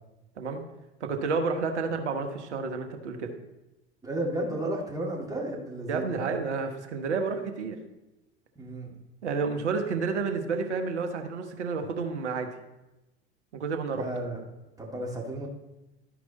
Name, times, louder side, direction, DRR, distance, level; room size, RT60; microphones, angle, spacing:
voice 1, 1.0-3.3 5.9-7.8 9.2-12.5 13.5-14.1, right 4 dB, 75° right, 5 dB, 1.1 m, -30 dB
voice 2, 4.0-6.2 8.6-8.9 13.9-14.4 14.8-15.5, right 1 dB, 10° right, -2 dB, 2.2 m, -33 dB
12.5 x 4.7 x 4.1 m, 0.97 s
figure-of-eight pair, 75°, 34 cm